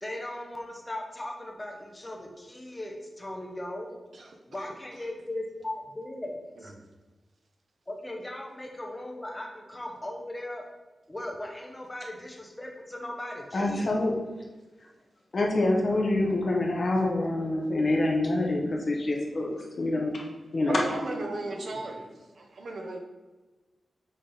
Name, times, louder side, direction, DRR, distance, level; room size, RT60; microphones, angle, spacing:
voice 1, 0.0-3.9 4.5-6.7 7.9-10.6 11.1-14.1 20.7-21.8, left 1 dB, 15° left, 1 dB, 1.0 m, -38 dB
voice 2, 13.5-14.1 15.3-20.2 20.5-20.8, left 2 dB, 45° left, 0 dB, 1.1 m, -26 dB
voice 3, 20.6-22.0 22.4-23.0, right 2 dB, 65° right, 3 dB, 0.8 m, -35 dB
6.7 x 3.8 x 3.9 m, 1.2 s
wide cardioid pair, 130°, 0 cm